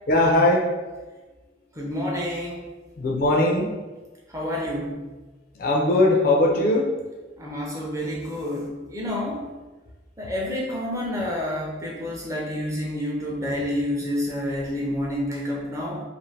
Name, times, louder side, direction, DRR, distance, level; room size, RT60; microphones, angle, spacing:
voice 1, 0.1-0.7 3.0-3.7 5.6-6.9, left 1 dB, 50° left, 0 dB, 0.4 m, -20 dB
voice 2, 1.7-2.6 4.3-5.0 7.4-9.5 10.2-16.0, left 1 dB, 15° right, -3 dB, 0.5 m, -29 dB
2.5 x 2.5 x 3.2 m, 1.3 s
head